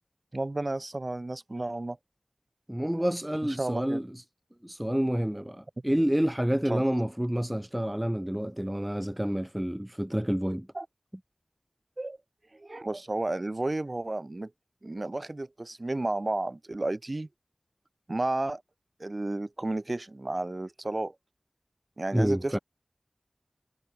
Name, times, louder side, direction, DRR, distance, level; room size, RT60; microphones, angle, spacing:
voice 1, 0.3-2.0 3.4-4.0 6.7-6.8 10.7-10.9 12.0-12.2 12.5-14.5 14.8-17.3 18.1-18.6 19.0-21.1 22.0-22.6, right 2 dB, 50° right, 2.3 m, -32 dB
voice 2, 2.7-4.2 4.6-10.7 22.1-22.6, equal, 10° right, 0.5 m, -28 dB
wide cardioid pair, 45°, 0 cm